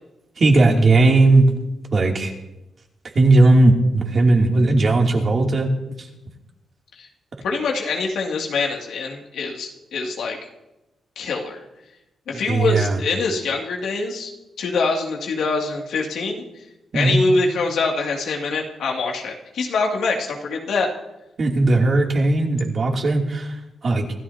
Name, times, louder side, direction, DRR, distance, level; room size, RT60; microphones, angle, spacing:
voice 1, 0.4-1.5 1.9-2.3 3.1-5.7 6.0-6.1 12.5-13.0 16.9-17.2 21.4-23.6 23.8-24.1, right 2 dB, 50° right, 0 dB, 2.7 m, -17 dB
voice 2, 7.4-10.4 11.2-11.6 12.3-14.3 14.6-16.4 16.9-20.9, left 3 dB, 85° left, 0 dB, 2.4 m, -24 dB
25.5 x 13.5 x 2.8 m, 0.96 s
cardioid pair, 95°, 0 cm